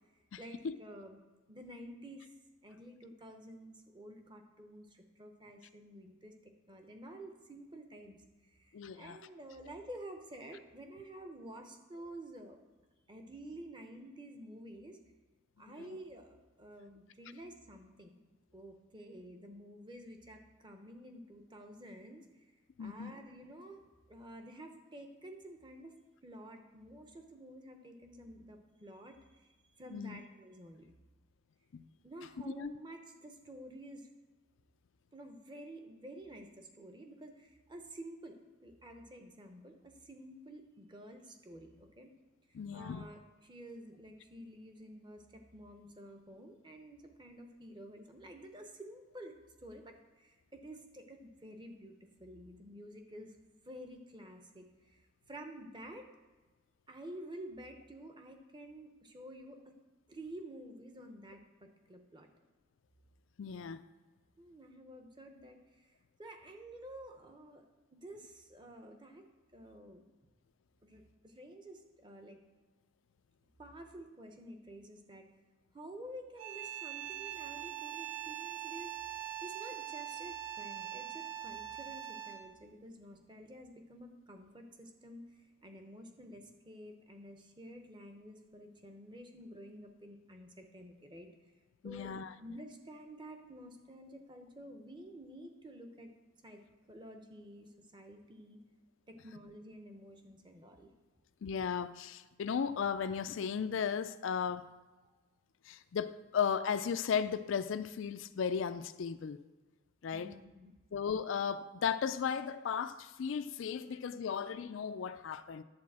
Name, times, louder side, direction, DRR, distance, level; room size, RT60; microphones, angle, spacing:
voice 1, 0.4-1.2 1.5-2.3 2.6-6.3 6.7-8.2 8.4-12.6 13.1-15.0 15.6-18.2 18.5-22.3 22.8-25.9 26.2-30.9 32.0-34.1 35.1-42.1 42.7-53.4 53.6-56.1 56.9-59.7 60.1-61.4 61.9-62.3 64.4-65.9 66.2-67.7 67.9-70.0 70.8-72.4 73.6-75.3 75.7-79.0 79.4-85.3 85.6-91.3 91.8-92.1 92.4-96.1 96.4-96.6 96.9-98.6 99.1-100.9 105.0-105.2 110.1-110.7 113.9-114.0 114.3-114.4, right 1 dB, 20° right, 0.9 m, -50 dB
voice 2, 8.7-9.2 15.6-15.9 22.8-23.1 29.9-30.2 31.7-31.8 32.5-32.7 42.5-43.1 63.4-63.8 91.8-92.3 101.4-104.6 105.7-109.4 110.0-110.3 110.9-115.6, left 7 dB, 70° left, 0.4 m, -35 dB
sound 1, 76.4-82.6, right 12 dB, 85° right, 0.9 m, -42 dB
10.5 x 4.2 x 7.4 m
head